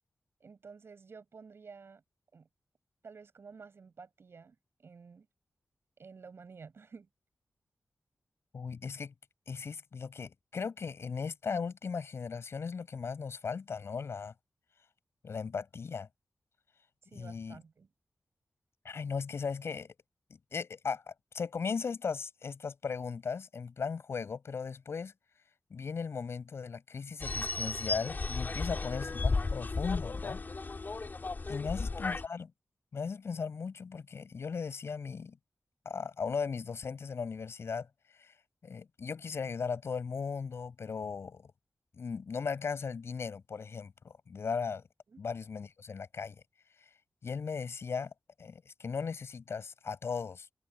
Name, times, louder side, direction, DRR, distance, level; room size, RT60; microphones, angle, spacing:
voice 1, 0.4-2.0 2.3-2.5 3.0-5.3 6.0-7.1 17.1-17.9 28.5-28.9 31.4-31.9 45.1-45.2, right 5 dB, 70° right, 7.2 m, -52 dB
voice 2, 8.5-9.1 9.5-14.3 15.2-16.1 17.1-17.6 18.8-19.9 20.5-25.1 25.7-30.4 31.5-32.5 32.9-35.4 35.9-37.9 38.1-38.3 38.6-41.5 42.0-44.8 45.2-46.4 47.2-48.1 48.4-50.5, left 5 dB, 80° left, 5.6 m, -37 dB
sound 1, 27.2-32.2, left 3 dB, 45° left, 5.2 m, -34 dB
wide cardioid pair, 100°, 4 cm